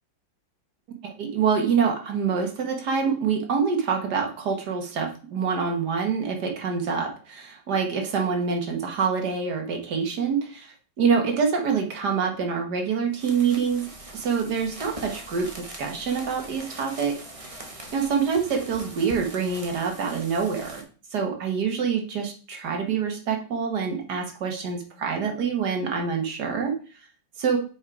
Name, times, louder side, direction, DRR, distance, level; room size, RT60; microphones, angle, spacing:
voice 1, 1.2-17.2 17.9-20.8 21.1-26.7 27.4-27.6, right 6 dB, 65° right, 3 dB, 1.9 m, -26 dB
sound 1, 13.1-20.8, right 1 dB, 20° right, 1.1 m, -42 dB
6.4 x 4.8 x 4.8 m, 0.39 s
omnidirectional pair, 2.0 m